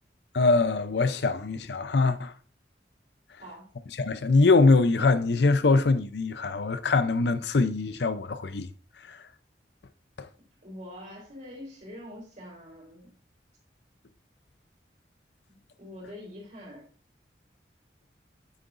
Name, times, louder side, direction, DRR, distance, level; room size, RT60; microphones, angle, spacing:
voice 1, 0.3-2.3 4.0-8.7 9.1-9.2, left 3 dB, 75° left, 0.6 m, -23 dB
voice 2, 3.4-3.7 10.6-13.1 15.5-16.8, left 1 dB, 45° right, 3.8 m, -44 dB
9.2 x 6.8 x 2.5 m
head